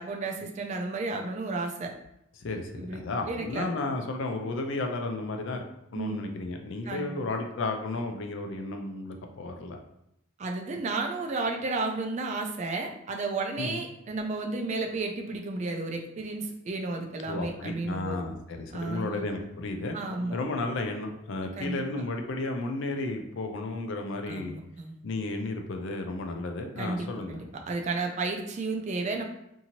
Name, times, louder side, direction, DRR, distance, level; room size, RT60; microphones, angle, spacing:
voice 1, 0.0-1.9 2.7-3.7 5.9-6.3 6.9-7.2 10.4-18.2 18.7-19.2 19.9-20.4 21.6-21.8 24.3-25.0 26.8-29.2, right 3 dB, 35° right, 3 dB, 0.3 m, -33 dB
voice 2, 2.4-5.6 5.9-9.8 13.6-13.8 17.3-20.0 20.3-24.5 25.0-27.4, left 2 dB, 65° left, 4 dB, 0.4 m, -33 dB
2.7 x 2.6 x 2.8 m, 0.81 s
head